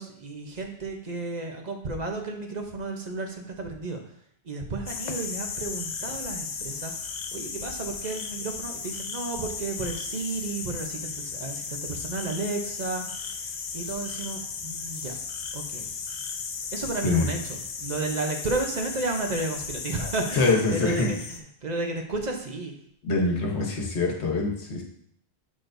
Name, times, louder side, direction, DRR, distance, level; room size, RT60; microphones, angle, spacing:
voice 1, 0.0-4.0 4.4-6.9 7.3-15.2 15.5-15.9 16.7-22.8, right 3 dB, 45° right, 2 dB, 0.9 m, -32 dB
sound 1, 4.9-21.4, left 5 dB, 50° left, 0.6 m, -35 dB
voice 2, 20.3-21.1 23.0-24.8, left 3 dB, 80° left, 0 dB, 1.3 m, -24 dB
6.5 x 6.1 x 2.6 m, 0.67 s
omnidirectional pair, 1.1 m